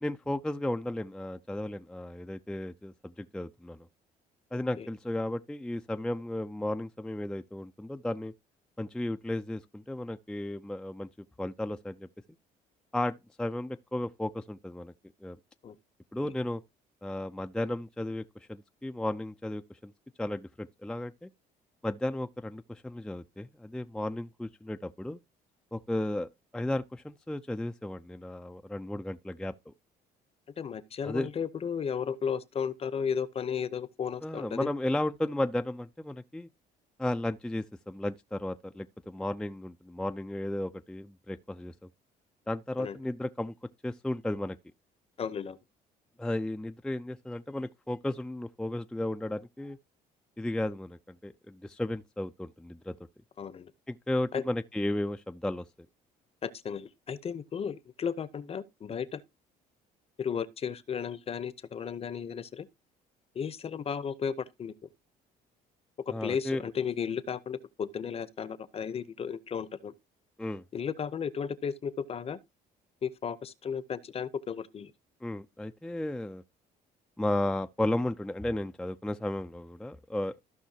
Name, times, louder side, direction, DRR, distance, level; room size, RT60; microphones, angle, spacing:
voice 1, 0.0-3.9 4.5-8.3 8.8-11.1 11.4-12.1 12.9-14.9 15.2-15.4 16.1-16.6 17.0-19.9 20.2-21.3 21.8-25.2 25.7-29.7 31.0-31.3 34.2-36.5 37.0-41.7 42.5-43.5 43.8-44.6 46.2-49.8 50.4-52.9 53.9-55.6 66.1-66.6 70.4-70.6 75.2-76.4 77.2-80.3, left 1 dB, 5° left, 0.4 m, -34 dB
voice 2, 30.6-34.7 42.8-43.0 45.2-45.6 53.4-53.7 54.3-54.4 56.4-59.2 60.2-62.7 63.3-64.9 66.1-69.9 70.7-72.4 73.0-74.9, left 7 dB, 35° left, 0.8 m, -34 dB
15.0 x 5.5 x 2.8 m
cardioid pair, 110°, 17 cm